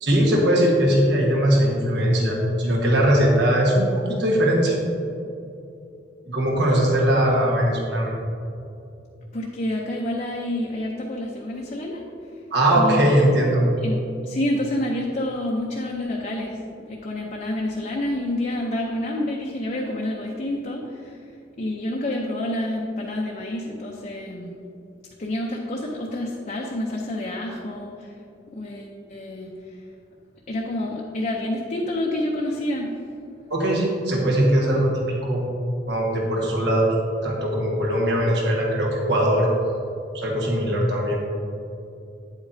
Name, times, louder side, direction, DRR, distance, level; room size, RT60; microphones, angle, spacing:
voice 1, 0.0-4.8 6.3-8.2 12.5-13.7 33.5-35.4 35.9-36.9 37.2-39.5 40.1-41.2, right 1 dB, 65° right, -2 dB, 1.4 m, -20 dB
voice 2, 9.3-12.4 12.7-13.4 13.8-14.0 14.2-16.6 16.9-21.3 21.6-24.5 25.2-28.1 28.5-29.8 30.5-32.9, left 1 dB, 45° left, -2 dB, 0.7 m, -28 dB
9.0 x 8.1 x 2.7 m, 2.7 s
head